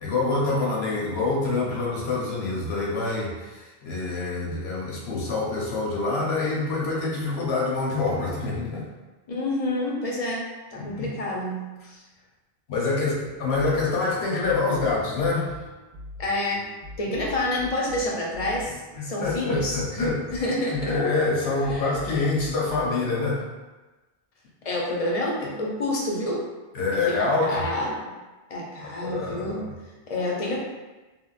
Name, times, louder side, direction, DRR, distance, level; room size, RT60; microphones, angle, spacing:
voice 1, 0.0-8.9 10.7-11.1 12.7-15.5 19.0-20.2 20.7-23.4 26.7-27.7 28.8-29.7, left 3 dB, 80° left, -4 dB, 1.0 m, -26 dB
voice 2, 9.3-12.0 16.2-16.7 17.0-21.0 21.7-21.9 24.6-26.5 26.9-28.1 28.5-29.7 30.1-30.6, left 1 dB, 45° left, -2 dB, 0.5 m, -28 dB
sound 1, 13.5-22.9, left 1 dB, 60° right, 0.7 m, -42 dB
3.4 x 2.1 x 2.4 m, 1.2 s
omnidirectional pair, 1.1 m